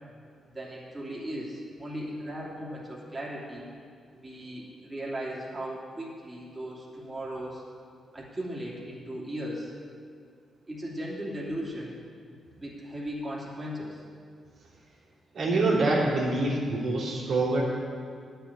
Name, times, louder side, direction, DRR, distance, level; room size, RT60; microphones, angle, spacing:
voice 1, 0.5-3.7 4.1-7.6 8.1-9.7 10.7-12.0 12.3-14.0, equal, 25° right, -5 dB, 2.9 m, -37 dB
voice 2, 15.3-17.6, right 2 dB, 70° right, -6 dB, 2.9 m, -25 dB
9.3 x 7.0 x 9.0 m, 2.2 s
cardioid pair, 70°, 0 cm